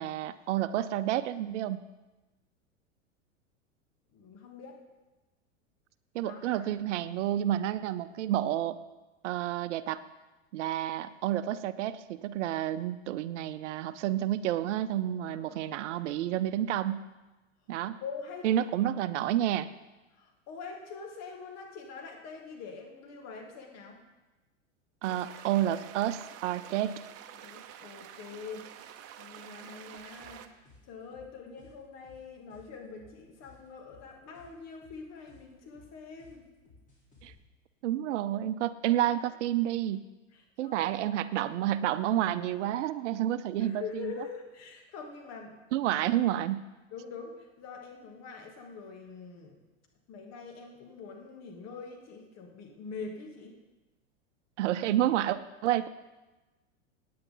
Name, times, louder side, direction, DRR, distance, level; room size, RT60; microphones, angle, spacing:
voice 1, 0.0-1.8 6.1-8.8 9.2-10.0 10.5-17.0 17.7-18.0 18.4-19.7 25.0-27.0 37.2-37.3 37.8-40.0 40.6-44.1 45.7-46.6 54.6-55.9, right 12 dB, 65° right, 14 dB, 0.7 m, -30 dB
voice 2, 4.1-4.8 6.2-6.6 15.3-15.6 17.8-18.6 20.2-24.0 27.3-30.4 30.8-36.4 40.3-40.8 43.6-45.5 46.9-49.6 50.1-53.6, left 5 dB, 40° left, 1 dB, 2.7 m, -44 dB
sound 1, 25.0-30.5, right 10 dB, 40° right, 1.0 m, -48 dB
sound 2, 30.0-37.3, left 2 dB, 20° left, 3.9 m, -59 dB
17.5 x 9.4 x 3.9 m, 1.1 s
hypercardioid pair, 105°, 38 cm